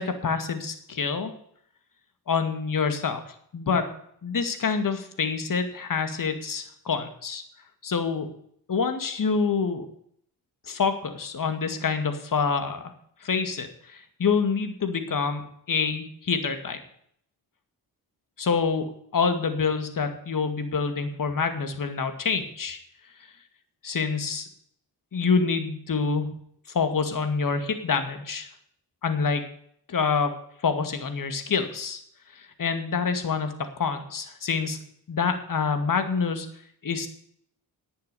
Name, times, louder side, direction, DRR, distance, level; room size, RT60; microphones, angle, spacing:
voice 1, 0.0-1.3 2.3-3.9 4.2-7.4 7.8-8.3 8.7-9.9 10.7-12.9 13.2-16.8 18.4-22.8 23.8-24.5 25.1-26.3 26.7-28.5 29.0-29.4 29.9-30.3 30.6-32.0 32.3-34.8 35.1-36.5 36.8-37.1, left 5 dB, 55° left, 8 dB, 2.3 m, -27 dB
11.0 x 8.8 x 8.4 m, 0.66 s
cardioid pair, 85°, 39 cm